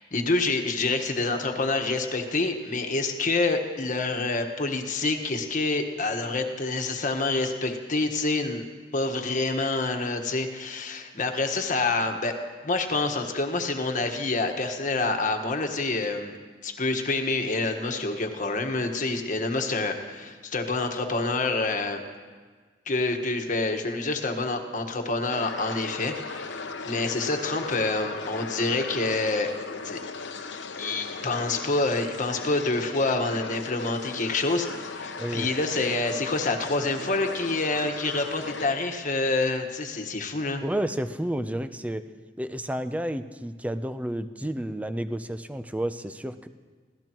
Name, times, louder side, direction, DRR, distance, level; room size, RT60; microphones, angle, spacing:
voice 1, 0.0-8.7 8.9-12.4 12.6-16.3 16.6-22.0 22.9-29.5 29.8-30.0 30.8-40.6, left 3 dB, 45° left, 5 dB, 1.4 m, -27 dB
sound 1, 25.3-38.7, left 4 dB, 75° left, 0.9 m, -37 dB
voice 2, 35.2-35.5 40.6-42.0 42.4-46.5, right 1 dB, 10° right, 10 dB, 0.6 m, -31 dB
26.0 x 17.0 x 3.0 m, 1.5 s
head